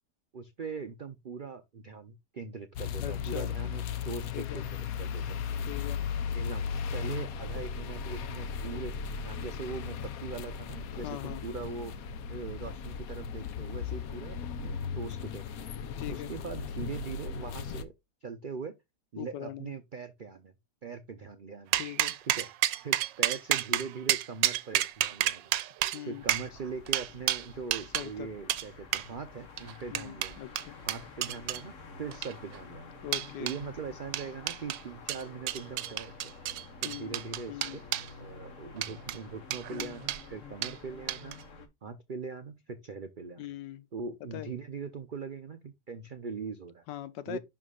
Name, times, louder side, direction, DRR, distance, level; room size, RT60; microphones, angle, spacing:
voice 1, 0.3-5.4 6.3-15.7 16.1-17.9 18.2-18.7 19.1-20.5 20.8-21.8 22.4-22.5 22.8-25.5 26.0-30.4 30.9-33.0 33.4-36.3 36.8-37.8 38.2-41.4 41.8-43.4 43.9-46.8 47.3-47.4, right 5 dB, 70° right, 0.4 m, -41 dB
sound 1, 2.8-17.8, left 6 dB, 65° left, 1.0 m, -36 dB
voice 2, 3.0-3.5 4.3-4.6 5.7-6.1 11.0-11.4 16.0-16.3 19.2-19.7 21.8-22.2 25.9-26.2 27.9-28.3 29.9-30.8 33.0-33.6 36.8-37.2 37.5-37.8 39.7-39.9 43.4-43.9 44.3-44.5 46.9-47.4, left 12 dB, 85° left, 1.4 m, -41 dB
sound 2, 21.7-28.1 28.5-28.6 28.9-29.1 29.6-31.6 32.1-32.6 33.1-33.6 34.1-34.8 35.1-38.1 38.7-39.2 39.5-40.2 40.6-40.8 41.1-41.4, right 13 dB, 90° right, 1.3 m, -30 dB
sound 3, 26.2-41.7, left 4 dB, 50° left, 1.4 m, -50 dB
11.0 x 3.7 x 2.3 m
omnidirectional pair, 1.9 m